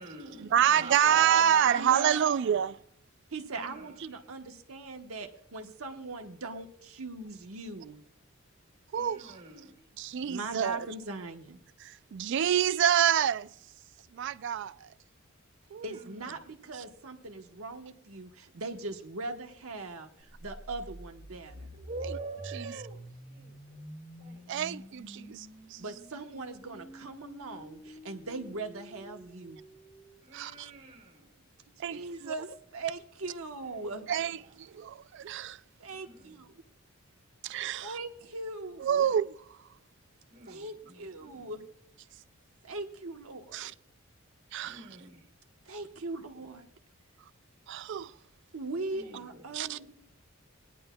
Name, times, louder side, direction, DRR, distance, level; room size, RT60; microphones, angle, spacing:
voice 1, 0.0-2.6 3.5-4.2 8.9-9.9 15.8-16.5 21.7-23.9 24.2-24.9 26.6-26.9 30.2-31.5 33.6-34.7 35.9-36.5 40.3-41.6 44.6-45.3 48.9-49.9, right 4 dB, 40° right, 1.9 m, -45 dB
voice 2, 0.5-2.7 8.9-9.3 10.0-10.9 11.8-13.5 14.1-14.9 15.7-16.0 24.5-25.8 30.3-30.7 31.8-32.3 34.1-35.6 37.4-38.0 38.8-39.3 43.5-43.7 44.5-44.8 47.7-48.1 49.5-49.8, right 9 dB, 55° right, 0.3 m, -27 dB
voice 3, 1.8-2.1 3.3-8.0 10.2-11.6 15.8-21.7 25.8-29.6 31.9-34.0 35.8-36.6 37.8-39.1 40.5-41.6 42.6-43.7 45.7-46.7 48.5-49.9, right 3 dB, 85° right, 1.2 m, -40 dB
sound 1, 20.3-30.2, equal, 5° left, 0.9 m, -48 dB
20.5 x 10.5 x 2.3 m
head